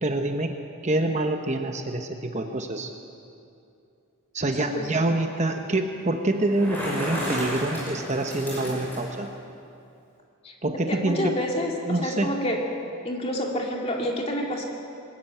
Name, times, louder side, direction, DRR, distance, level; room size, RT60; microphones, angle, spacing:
voice 1, 0.0-0.6 0.8-2.9 4.3-9.3 10.6-11.4 11.9-12.3, right 2 dB, 30° right, 5 dB, 0.9 m, -26 dB
voice 2, 4.6-4.9 10.4-10.5 10.9-12.7 13.0-14.6, equal, 25° left, 0 dB, 2.3 m, -28 dB
Bicycle, 6.4-9.2, equal, 10° left, 5.5 m, -32 dB
21.5 x 13.5 x 9.0 m, 2.6 s
head